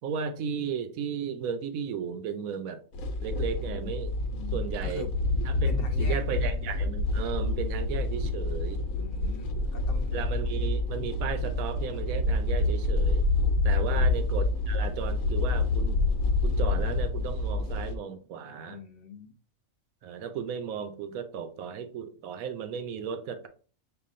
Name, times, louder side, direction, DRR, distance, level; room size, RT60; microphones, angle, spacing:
voice 1, 0.0-2.8 3.2-4.1 4.5-5.0 5.5-5.7 6.0-8.8 10.1-13.3 13.6-16.0 16.4-18.8 20.0-23.5, right 7 dB, 80° right, 1.1 m, -35 dB
sound 1, 2.9-18.0, left 2 dB, 80° left, 1.2 m, -27 dB
voice 2, 4.3-5.1 5.6-6.2 8.9-10.2 13.7-14.2 18.6-19.4, left 3 dB, 50° left, 0.8 m, -44 dB
6.8 x 2.6 x 2.5 m
omnidirectional pair, 1.4 m